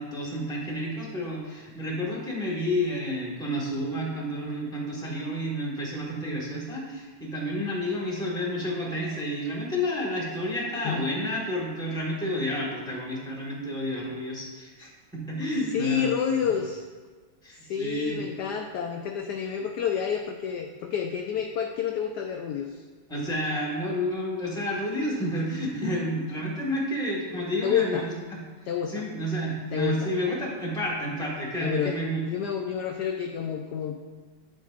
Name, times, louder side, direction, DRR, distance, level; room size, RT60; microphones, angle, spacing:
voice 1, 0.0-16.1 17.4-18.2 23.1-28.4 28.9-32.2, equal, ahead, -4 dB, 1.2 m, -30 dB
voice 2, 15.7-16.8 17.6-22.8 27.6-28.1 28.6-29.1 29.7-30.1 31.6-32.0 32.2-34.0, left 8 dB, 75° left, 3 dB, 0.9 m, -29 dB
9.3 x 7.7 x 2.5 m, 1.4 s
omnidirectional pair, 2.2 m